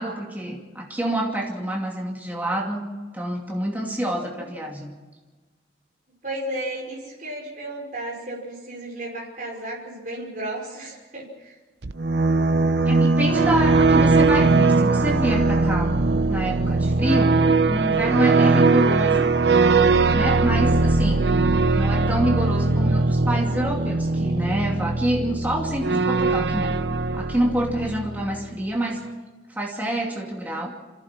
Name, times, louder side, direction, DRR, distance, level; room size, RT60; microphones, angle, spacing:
voice 1, 0.0-2.8 3.1-4.9 12.8-16.0 16.3-19.3 20.1-21.3 21.7-29.0 29.5-30.7, right 1 dB, 10° right, -1 dB, 2.6 m, -27 dB
voice 2, 6.2-11.6, right 1 dB, 45° right, -2 dB, 5.3 m, -33 dB
sound 1, 11.8-28.5, right 3 dB, 65° right, 0.8 m, -20 dB
27.0 x 16.0 x 6.0 m, 1.3 s
head